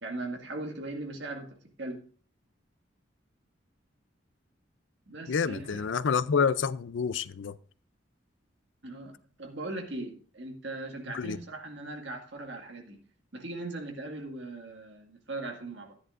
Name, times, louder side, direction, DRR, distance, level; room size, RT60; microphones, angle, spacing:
voice 1, 0.0-2.0 5.1-5.9 8.8-13.0 13.3-15.9, right 2 dB, 65° right, 2.0 m, -39 dB
voice 2, 5.3-7.6 11.1-11.4, left 6 dB, 75° left, 0.5 m, -28 dB
13.5 x 10.5 x 2.5 m
head